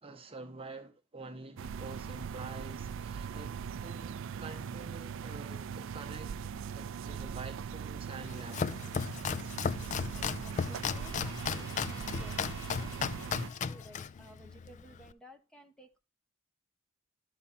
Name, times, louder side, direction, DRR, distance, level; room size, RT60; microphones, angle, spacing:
voice 1, 0.0-6.3 6.7-8.8 9.4-9.5, right 3 dB, 25° right, 0.8 m, -47 dB
sound 1, 1.6-13.5, right 7 dB, 65° right, 0.4 m, -40 dB
Domestic sounds home sounds, 8.2-15.1, left 6 dB, 35° left, 0.3 m, -36 dB
Trumpet, 9.2-13.9, left 3 dB, 80° left, 1.3 m, -54 dB
voice 2, 10.2-16.0, right 1 dB, 5° left, 0.9 m, -56 dB
11.5 x 4.1 x 4.2 m
head